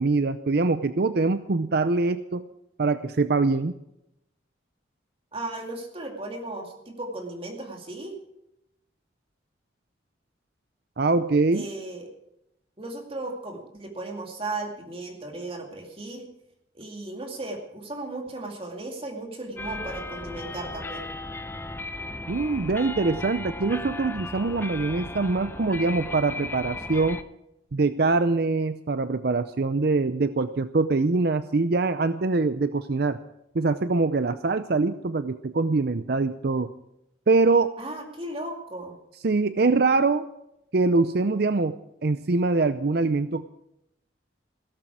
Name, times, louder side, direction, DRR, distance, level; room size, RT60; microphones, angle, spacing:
voice 1, 0.0-2.4 2.8-3.7 11.0-11.7 22.3-27.2 27.7-33.2 33.5-36.7 37.3-37.7 39.2-40.3 40.7-41.7 42.0-43.5, right 3 dB, 55° right, 12 dB, 0.6 m, -23 dB
voice 2, 5.3-8.2 11.5-12.1 12.8-16.3 16.7-21.1 37.8-38.9, right 2 dB, 30° right, 2 dB, 2.5 m, -36 dB
sound 1, 19.6-27.2, left 2 dB, 10° left, 0.7 m, -36 dB
16.5 x 13.5 x 4.8 m, 0.83 s
head